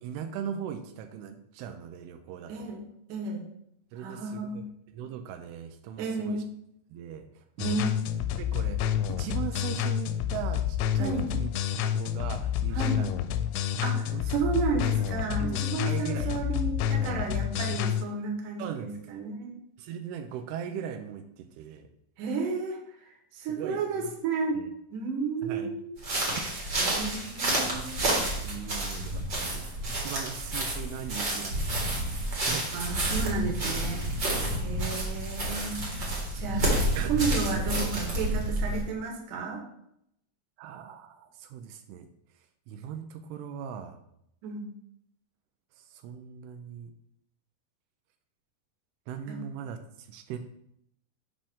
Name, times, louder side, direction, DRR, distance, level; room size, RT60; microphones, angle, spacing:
voice 1, 0.0-2.7 3.9-4.7 4.9-6.4 6.9-7.8 8.4-8.8 9.1-11.5 11.9-13.2 13.9-14.2 15.4-15.6 15.9-16.3 18.6-19.0 19.8-21.9 23.5-24.1 24.6-24.7 25.4-25.7 27.6-29.7 30.0-31.8 32.4-32.8 37.0-37.1 40.6-42.1 42.7-44.0 45.8-46.9 49.1-50.4, right 8 dB, 85° right, 7 dB, 2.6 m, -39 dB
voice 2, 2.5-2.8 3.1-3.4 4.0-4.7 6.0-6.5 7.6-8.2 11.0-11.3 12.7-13.0 13.8-19.6 22.2-22.8 23.3-24.6 24.9-25.9 26.8-28.1 32.7-34.1 34.6-35.8 36.3-36.7 37.1-39.6 44.4-44.7 49.3-49.4, right 4 dB, 65° right, 2 dB, 2.4 m, -32 dB
sound 1, 7.6-18.0, left 9 dB, 85° left, 2.5 m, -29 dB
sound 2, 26.0-38.8, right 1 dB, 45° right, 1.4 m, -29 dB
7.7 x 5.5 x 3.6 m, 0.75 s
omnidirectional pair, 4.6 m